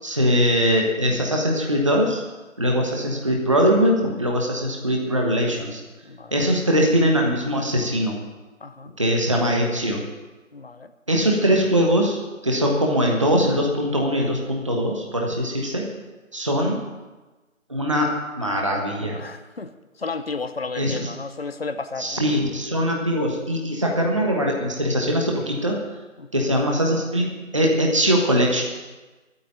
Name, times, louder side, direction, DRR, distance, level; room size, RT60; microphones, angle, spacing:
voice 1, 0.0-2.2 2.6-5.8 6.3-8.2 9.0-10.0 11.1-15.8 16.3-16.8 17.7-19.2 20.7-21.1 22.0-25.8 26.3-27.3 27.5-28.6, equal, 25° right, 0 dB, 1.3 m, -21 dB
voice 2, 6.0-6.5 8.6-8.9 10.5-10.9 19.1-19.7 20.0-22.2 26.2-26.5, left 4 dB, 45° left, 9 dB, 0.8 m, -33 dB
12.5 x 8.5 x 9.1 m, 1.2 s
figure-of-eight pair, 170°, 40 cm